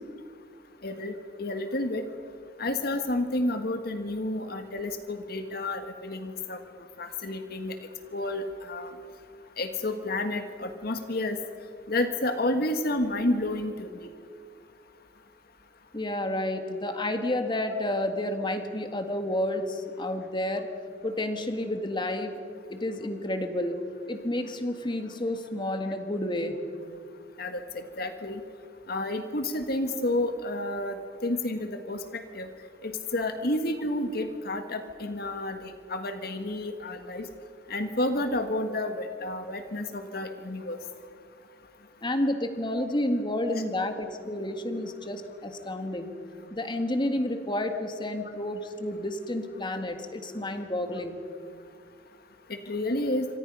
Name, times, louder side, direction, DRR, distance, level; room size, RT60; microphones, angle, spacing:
voice 1, 0.8-2.0 2.6-6.6 7.0-7.7 8.1-8.9 9.6-11.4 11.9-14.1 27.4-28.4 28.9-32.5 32.8-37.3 37.7-40.8 52.5-53.3, left 1 dB, 60° left, 7 dB, 1.6 m, -30 dB
voice 2, 15.9-20.7 21.0-22.4 22.7-23.8 24.1-26.6 42.0-46.1 46.5-51.2, left 1 dB, 25° left, 6 dB, 1.8 m, -30 dB
27.5 x 25.5 x 5.5 m, 2.3 s
head